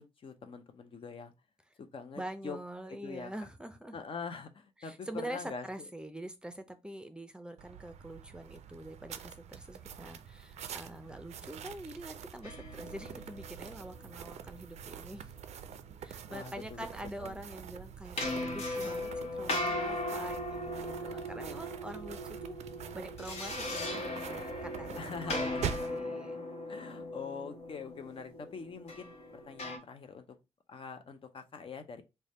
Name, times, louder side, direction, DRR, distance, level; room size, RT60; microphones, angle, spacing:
voice 1, 0.0-1.3 1.8-2.6 3.0-3.3 3.9-5.7 16.3-16.9 17.2-17.4 24.9-25.9 26.7-30.4 30.7-32.0, left 5 dB, 55° left, 0.6 m, -44 dB
voice 2, 2.1-4.0 4.8-15.3 16.0-22.6 22.9-26.4, right 1 dB, 10° right, 0.5 m, -45 dB
sound 1, 7.6-26.0, right 8 dB, 85° right, 0.4 m, -45 dB
sound 2, 12.4-14.5 18.2-29.8, left 1 dB, 75° left, 1.0 m, -38 dB
3.3 x 2.2 x 4.0 m
cardioid pair, 90°, 11 cm